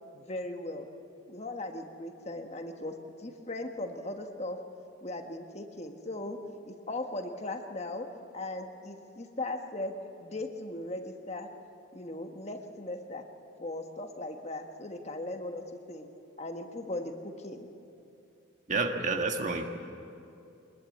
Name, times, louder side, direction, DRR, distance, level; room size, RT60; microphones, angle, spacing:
voice 1, 0.1-0.9 1.3-4.6 5.0-6.4 6.6-9.9 10.2-11.5 11.9-13.3 13.6-16.1 16.4-17.7, left 2 dB, 35° left, 5 dB, 1.3 m, -38 dB
voice 2, 18.7-19.6, right 3 dB, 40° right, 4 dB, 1.6 m, -29 dB
23.5 x 20.5 x 8.4 m, 2.7 s
head